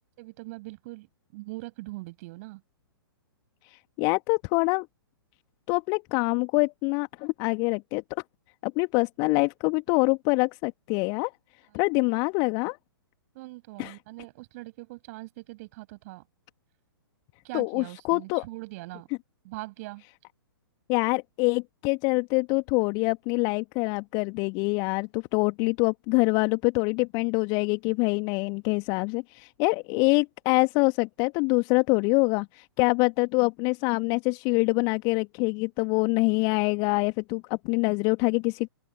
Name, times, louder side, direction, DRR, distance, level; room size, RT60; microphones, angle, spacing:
voice 1, 0.2-1.1 1.3-2.6 13.3-16.2 17.4-19.1 19.4-20.0, right 22 dB, 40° right, 7.1 m, -41 dB
voice 2, 3.7-4.9 5.7-8.0 8.6-11.3 11.7-12.8 13.8-14.0 17.5-18.4 20.9-38.7, left 32 dB, 30° left, 1.8 m, -25 dB
open air
figure-of-eight pair, 115°, 13 cm